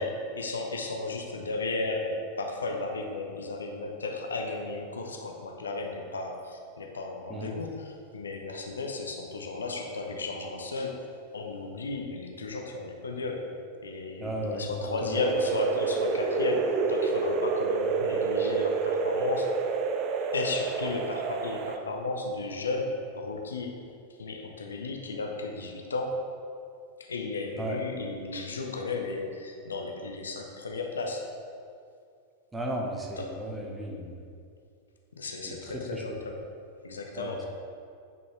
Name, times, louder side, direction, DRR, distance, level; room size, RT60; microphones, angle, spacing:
voice 1, 0.0-11.1 11.3-13.5 13.8-19.6 20.3-23.8 24.2-26.3 27.0-31.3 33.2-33.4 35.2-36.4 36.8-37.4, left 3 dB, 70° left, 2 dB, 0.7 m, -34 dB
voice 2, 14.2-15.2 27.6-27.8 32.5-34.2 35.4-36.0 37.2-37.5, right 1 dB, 10° right, -1 dB, 1.1 m, -35 dB
sound 1, 15.1-21.8, right 5 dB, 40° right, 0.6 m, -28 dB
9.2 x 5.4 x 3.2 m, 2.4 s
figure-of-eight pair, 90°, 0 cm